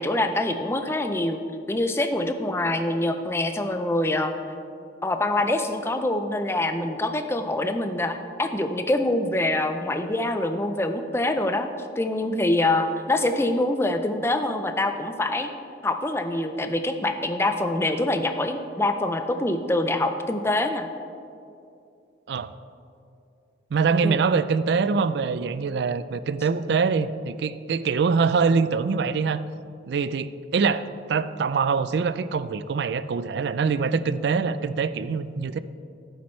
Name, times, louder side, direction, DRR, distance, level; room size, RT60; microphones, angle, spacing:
voice 1, 0.0-1.4 1.7-4.3 5.0-11.7 12.0-15.5 15.8-20.9 24.0-24.2, left 1 dB, 15° left, 7 dB, 0.4 m, -25 dB
voice 2, 23.7-29.4 29.9-35.6, right 5 dB, 65° right, 14 dB, 0.3 m, -24 dB
11.5 x 8.7 x 3.2 m, 2.6 s
head